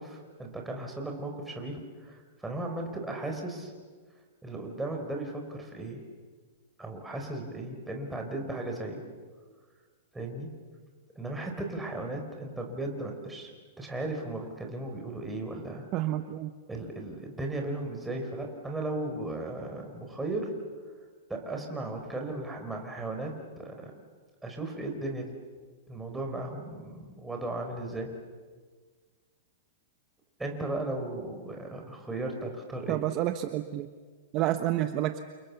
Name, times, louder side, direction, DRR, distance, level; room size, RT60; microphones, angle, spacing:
voice 1, 0.0-3.7 4.4-6.0 6.8-9.0 10.1-10.5 11.2-15.9 16.7-20.5 21.3-23.9 24.4-25.3 25.9-28.1 30.4-33.0, right 2 dB, 5° right, 2 dB, 4.5 m, -36 dB
voice 2, 15.9-16.5 32.9-33.9 34.3-35.2, right 13 dB, 35° right, 8 dB, 1.1 m, -29 dB
29.5 x 28.5 x 7.1 m, 1.5 s
supercardioid pair, 155°, 0 cm